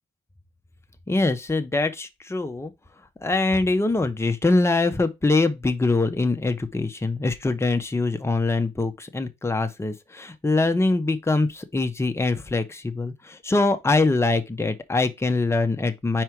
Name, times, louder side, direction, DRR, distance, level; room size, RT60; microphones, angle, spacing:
voice 1, 1.1-2.7 3.2-16.2, left 3 dB, 15° left, 0.9 m, -23 dB
4.8 x 4.5 x 4.6 m
cardioid pair, 90°, 20 cm